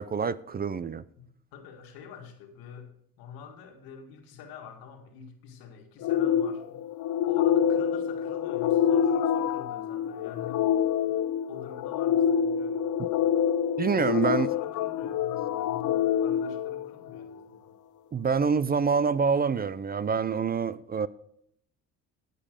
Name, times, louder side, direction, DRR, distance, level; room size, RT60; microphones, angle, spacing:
voice 1, 0.0-1.0 13.0-13.1 13.8-14.5 18.1-21.1, right 6 dB, 25° right, 0.5 m, -26 dB
voice 2, 1.2-2.9 3.2-6.8 7.3-10.7 11.0-11.1 11.5-12.8 13.9-17.7, left 7 dB, 85° left, 1.9 m, -46 dB
sound 1, 6.0-17.3, left 9 dB, 60° left, 0.6 m, -26 dB
15.5 x 5.3 x 5.1 m
supercardioid pair, 70°, 35 cm